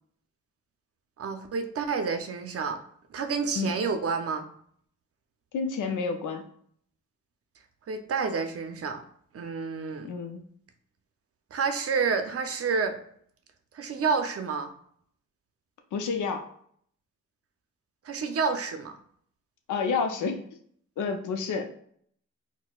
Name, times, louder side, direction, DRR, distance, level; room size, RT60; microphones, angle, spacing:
voice 1, 1.2-2.8 3.1-4.5 7.9-9.0 9.3-10.1 11.5-13.0 13.7-14.7 18.0-18.9, right 5 dB, 50° right, 6 dB, 0.5 m, -29 dB
voice 2, 5.5-6.5 10.0-10.4 15.9-16.4 19.7-20.4 21.0-21.7, left 5 dB, 75° left, 5 dB, 0.6 m, -29 dB
4.1 x 2.1 x 2.3 m, 0.63 s
cardioid pair, 55°, 31 cm